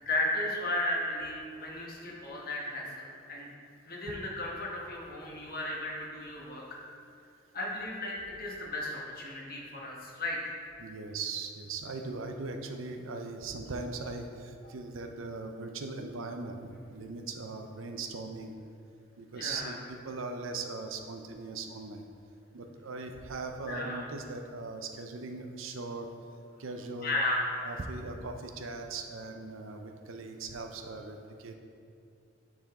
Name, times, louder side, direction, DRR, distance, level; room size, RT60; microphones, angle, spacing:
voice 1, 0.0-3.5 3.8-6.8 7.5-10.5 19.3-19.8 23.6-24.0 27.0-27.6, left 1 dB, 45° left, -3 dB, 1.3 m, -34 dB
voice 2, 10.8-18.5 19.2-22.0 22.5-26.1 26.6-27.1 27.6-31.6, right 3 dB, 80° right, 5 dB, 0.6 m, -39 dB
9.1 x 5.0 x 3.6 m, 2.4 s
head